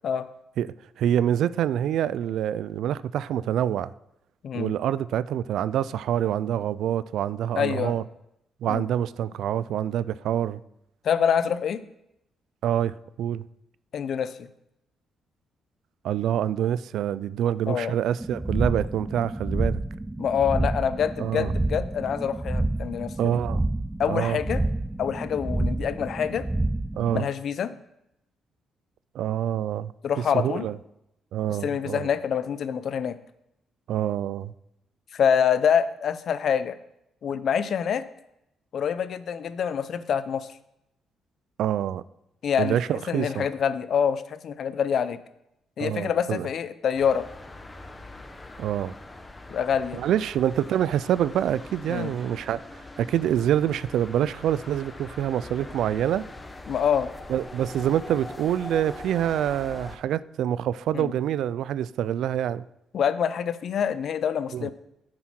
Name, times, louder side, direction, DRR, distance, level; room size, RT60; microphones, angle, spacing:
voice 1, 0.6-3.9 4.5-8.0 8.6-10.6 12.6-13.4 16.0-19.8 21.2-21.5 23.2-23.6 24.1-24.4 27.0-27.3 29.1-29.9 30.3-30.8 31.3-32.1 33.9-34.5 41.6-42.0 42.6-43.5 45.8-46.5 48.6-48.9 50.0-52.6 53.0-56.2 57.3-62.6 64.5-64.7, right 10 dB, 75° right, 0.3 m, -26 dB
voice 2, 4.4-4.7 7.5-7.9 8.7-8.8 11.0-11.8 13.9-14.5 17.7-17.9 20.2-23.4 24.0-24.6 25.0-26.5 27.1-27.7 30.0-30.7 31.6-33.2 35.1-36.8 37.2-38.0 38.7-40.5 42.4-42.8 43.1-45.2 45.8-47.3 49.5-50.0 51.9-52.1 56.7-57.1 60.9-61.1 62.9-64.7, left 8 dB, 60° left, 0.6 m, -26 dB
Mixdown whoosh, 18.2-27.2, right 2 dB, 15° right, 0.5 m, -29 dB
sound 1, 47.0-60.0, left 2 dB, 20° left, 1.0 m, -42 dB
10.5 x 7.6 x 4.4 m
cardioid pair, 90°, 0 cm